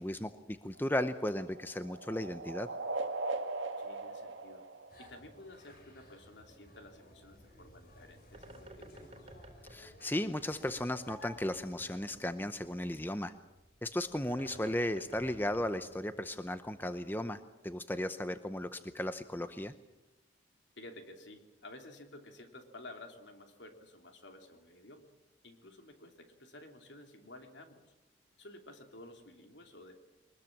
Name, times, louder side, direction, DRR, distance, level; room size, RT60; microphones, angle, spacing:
voice 1, 0.0-2.7 9.7-13.3 13.8-19.7, left 1 dB, 10° left, 10 dB, 0.7 m, -35 dB
sound 1, 0.8-5.5, right 2 dB, 80° right, 1.8 m, -39 dB
voice 2, 3.8-4.7 5.0-9.2 20.8-25.1 25.4-27.9 28.4-30.0, left 2 dB, 70° left, 5 dB, 3.1 m, -53 dB
sound 2, 4.9-12.2, equal, 50° left, 6.1 m, -55 dB
Bird, 7.5-16.7, right 1 dB, 30° right, 3.0 m, -56 dB
23.5 x 20.5 x 7.4 m, 1.0 s
head